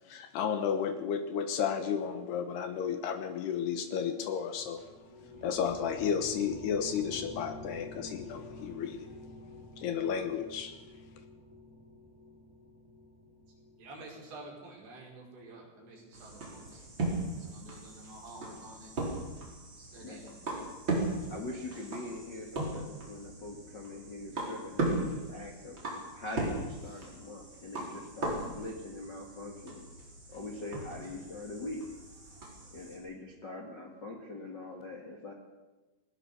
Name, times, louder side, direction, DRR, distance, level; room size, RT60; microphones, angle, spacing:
voice 1, 0.1-4.8 5.4-9.1 9.8-10.7, left 7 dB, 70° left, 8 dB, 2.9 m, -33 dB
sound 1, 4.5-14.3, left 2 dB, 10° left, 4.8 m, -48 dB
voice 2, 13.8-16.8 17.4-18.9 19.8-20.6 25.3-25.4, right 2 dB, 70° right, -2 dB, 7.3 m, -50 dB
sound 2, 16.1-33.0, right 2 dB, 25° right, 4.9 m, -38 dB
voice 3, 20.0-20.4 21.3-25.8 26.1-29.8 30.3-31.8 32.7-35.3, left 2 dB, 45° left, 1 dB, 1.5 m, -43 dB
19.5 x 19.0 x 6.9 m, 1.2 s
omnidirectional pair, 5.3 m